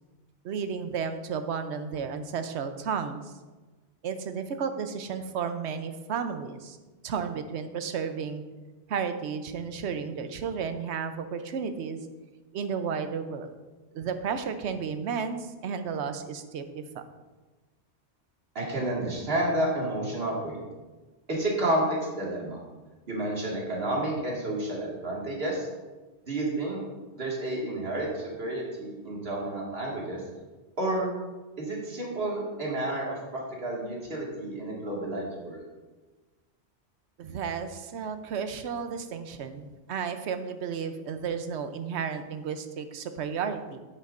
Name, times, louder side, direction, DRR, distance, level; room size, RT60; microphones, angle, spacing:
voice 1, 0.4-3.3 4.0-6.8 7.0-8.4 8.9-12.0 12.5-13.5 13.9-17.0 37.2-43.8, right 6 dB, 75° right, 9 dB, 1.0 m, -33 dB
voice 2, 18.6-20.6 21.3-22.6 23.1-25.7 26.3-26.8 27.1-30.2 30.8-31.1 31.6-35.6, right 1 dB, 60° right, -4 dB, 2.2 m, -30 dB
9.7 x 8.8 x 2.5 m, 1.3 s
omnidirectional pair, 1.2 m